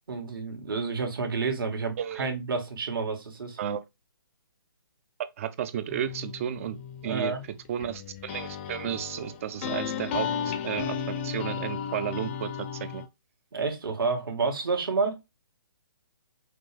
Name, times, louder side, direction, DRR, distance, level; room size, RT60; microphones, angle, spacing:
voice 1, 0.1-3.6 7.0-7.4 13.5-15.2, right 4 dB, 65° right, 1.7 m, -29 dB
voice 2, 2.0-2.3 3.6-3.8 5.4-6.8 7.0-7.3 7.7-13.0, right 10 dB, 35° right, 0.5 m, -33 dB
sound 1, 5.9-13.1, left 8 dB, 30° left, 0.6 m, -35 dB
5.9 x 2.4 x 3.3 m
figure-of-eight pair, 140°, 13 cm